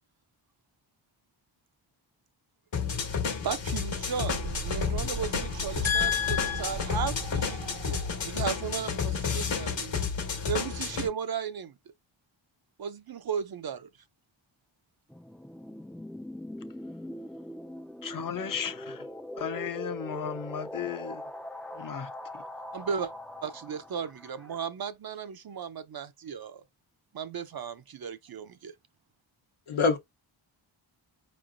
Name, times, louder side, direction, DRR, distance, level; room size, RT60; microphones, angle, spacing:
sound 1, 2.7-11.1, left 6 dB, 65° left, 1.3 m, -31 dB
voice 1, 3.4-10.0 10.4-11.7 12.8-13.9 22.7-23.1 23.4-26.6 27.1-28.7, right 7 dB, 50° right, 0.6 m, -35 dB
sound 2, 3.9-9.4, right 3 dB, 75° right, 0.9 m, -39 dB
voice 2, 5.8-6.6 29.7-30.0, left 6 dB, 85° left, 1.1 m, -26 dB
sound 3, 15.1-24.6, left 1 dB, 5° left, 0.4 m, -42 dB
voice 3, 18.0-19.0 19.4-21.2 21.8-22.1, left 8 dB, 45° left, 0.7 m, -35 dB
4.8 x 3.1 x 2.5 m
cardioid pair, 75°, 48 cm